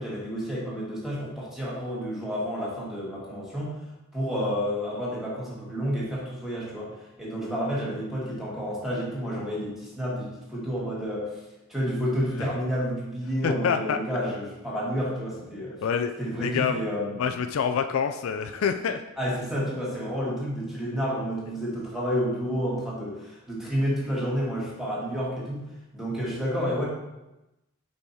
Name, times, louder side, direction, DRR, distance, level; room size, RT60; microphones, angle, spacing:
voice 1, 0.0-3.7 4.1-11.4 11.7-15.8 16.2-17.3 19.2-25.7 25.9-26.9, equal, ahead, -6 dB, 1.6 m, -30 dB
voice 2, 13.4-14.0 15.8-16.1 16.4-16.8 17.2-19.0, left 6 dB, 70° left, 8 dB, 0.4 m, -26 dB
5.5 x 4.6 x 4.2 m, 0.98 s
head